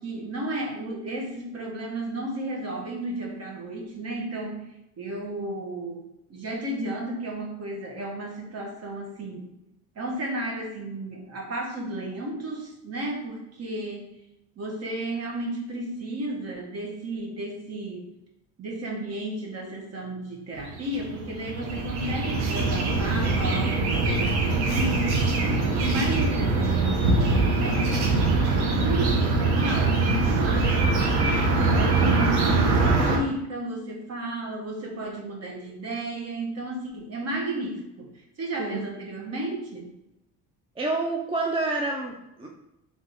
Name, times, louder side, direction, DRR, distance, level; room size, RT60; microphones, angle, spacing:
voice 1, 0.0-4.7 5.0-9.5 9.9-14.1 14.6-18.1 18.6-27.9 28.5-30.8 31.3-39.9, right 1 dB, 40° right, 0 dB, 1.2 m, -33 dB
sound 1, 20.6-33.2, right 3 dB, 85° right, 1.1 m, -23 dB
voice 2, 38.6-38.9 40.8-42.5, right 2 dB, 15° right, 1 dB, 0.4 m, -28 dB
3.5 x 3.3 x 4.0 m, 0.88 s
cardioid pair, 120°, 38 cm